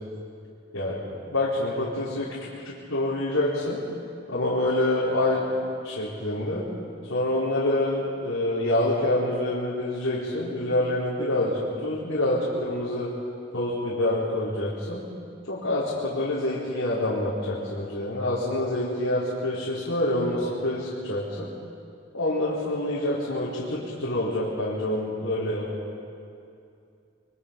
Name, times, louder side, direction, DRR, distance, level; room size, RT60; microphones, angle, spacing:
voice 1, 1.3-3.8 4.3-5.5 5.8-6.7 7.1-13.1 13.5-15.0 15.5-21.5 22.1-25.7, left 1 dB, 80° left, -8 dB, 4.2 m, -26 dB
26.5 x 24.0 x 5.3 m, 2.5 s
head